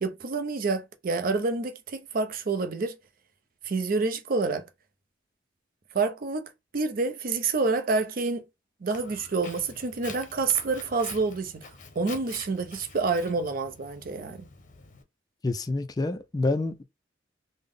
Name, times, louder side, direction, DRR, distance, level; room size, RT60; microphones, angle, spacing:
voice 1, 0.0-3.0 3.6-4.6 5.9-8.4 8.8-11.7 12.0-14.5, right 4 dB, 50° right, 0.5 m, -28 dB
Walk footsteps, 8.9-15.0, left 4 dB, 45° left, 0.7 m, -46 dB
voice 2, 15.4-16.8, left 2 dB, 20° left, 0.3 m, -27 dB
3.4 x 2.1 x 3.6 m
head